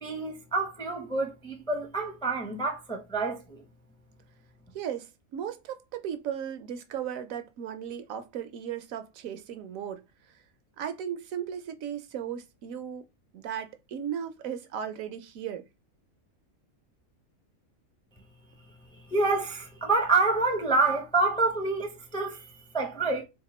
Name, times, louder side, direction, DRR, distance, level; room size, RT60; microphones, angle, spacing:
voice 1, 0.0-3.6 18.9-23.2, right 3 dB, 5° left, 0.4 m, -28 dB
voice 2, 4.7-10.0 10.8-13.0 13.3-15.6, right 9 dB, 75° right, 1.0 m, -36 dB
3.5 x 2.1 x 4.1 m
omnidirectional pair, 1.5 m